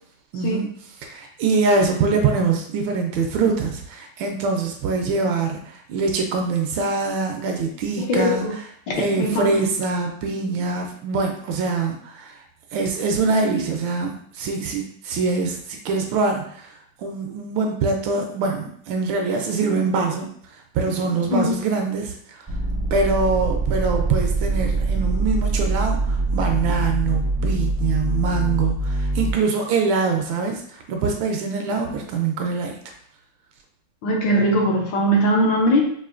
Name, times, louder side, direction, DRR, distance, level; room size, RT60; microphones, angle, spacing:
voice 1, 0.3-0.7 1.0-8.5 9.0-12.3 12.7-16.7 17.0-20.3 20.7-22.4 22.9-30.6 30.9-32.8, right 4 dB, 75° right, 3 dB, 1.3 m, -24 dB
voice 2, 8.0-8.5 8.9-9.7 21.3-21.6 31.9-32.0 34.0-35.9, equal, 70° left, -1 dB, 1.4 m, -21 dB
sound 1, 22.5-29.3, right 3 dB, 35° right, 0.4 m, -23 dB
4.8 x 2.5 x 2.5 m, 0.63 s
omnidirectional pair, 2.3 m